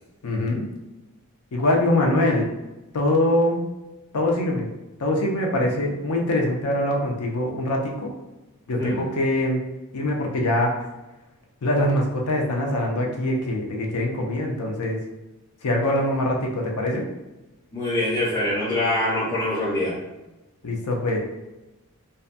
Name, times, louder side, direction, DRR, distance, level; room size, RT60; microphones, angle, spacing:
voice 1, 0.2-0.6 1.5-2.5 2.9-3.6 4.1-4.7 5.0-8.1 8.7-9.6 9.9-10.7 11.6-15.0 15.6-17.0 20.6-21.2, left 1 dB, 75° left, 0 dB, 0.5 m, -23 dB
voice 2, 17.7-20.0, left 1 dB, 15° left, -11 dB, 0.6 m, -24 dB
2.7 x 2.2 x 2.4 m, 1.0 s
head